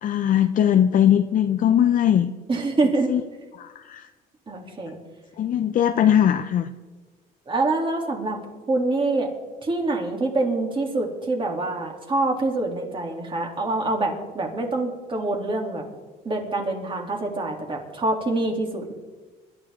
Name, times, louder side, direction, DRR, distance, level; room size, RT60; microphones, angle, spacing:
voice 1, 0.0-2.3 3.1-3.2 3.6-4.1 5.4-6.7, left 10 dB, 50° left, 6 dB, 0.7 m, -20 dB
voice 2, 2.5-3.1 4.5-5.0 7.5-8.4 8.7-9.3 9.6-15.9 16.2-18.9, right 2 dB, 30° right, 1 dB, 3.1 m, -25 dB
25.0 x 12.5 x 3.7 m, 1.3 s
cardioid pair, 110°, 17 cm